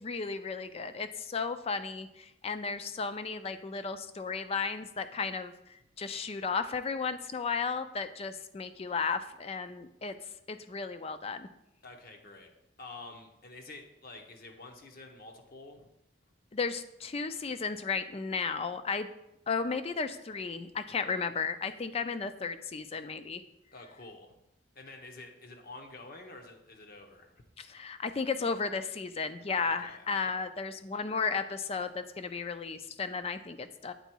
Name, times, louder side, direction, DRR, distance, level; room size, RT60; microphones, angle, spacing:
voice 1, 0.0-10.1 10.5-11.5 16.5-19.1 19.5-23.4 27.6-33.9, left 5 dB, 35° left, 11 dB, 0.4 m, -34 dB
voice 2, 11.8-12.5 12.8-15.9 23.7-24.3 24.7-27.3 29.6-30.1, left 2 dB, 55° left, 3 dB, 0.9 m, -48 dB
8.2 x 3.9 x 4.5 m, 0.83 s
head